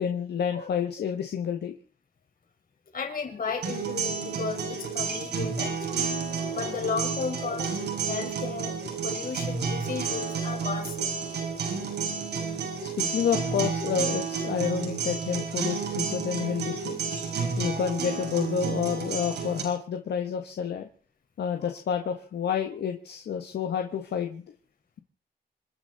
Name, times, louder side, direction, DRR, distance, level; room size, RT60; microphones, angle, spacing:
voice 1, 0.0-1.7 12.8-17.0 17.6-20.9 21.4-24.4, left 8 dB, 80° left, 5 dB, 1.5 m, -29 dB
voice 2, 2.9-6.0 6.3-7.8 8.1-11.2 11.9-12.1 12.8-12.9, left 5 dB, 55° left, 3 dB, 5.1 m, -34 dB
sound 1, 3.6-19.6, right 5 dB, 80° right, 6.9 m, -31 dB
27.5 x 10.5 x 4.2 m, 0.43 s
cardioid pair, 90°, 17 cm